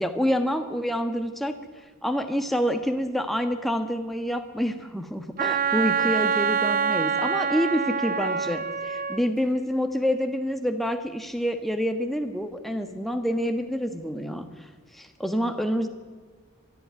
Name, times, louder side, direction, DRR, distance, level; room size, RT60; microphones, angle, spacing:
voice 1, 0.0-1.6 2.0-15.9, equal, ahead, 6 dB, 1.3 m, -27 dB
Wind instrument woodwind instrument, 5.4-9.2, right 6 dB, 40° right, 0.5 m, -25 dB
22.0 x 13.0 x 9.5 m, 1.5 s
head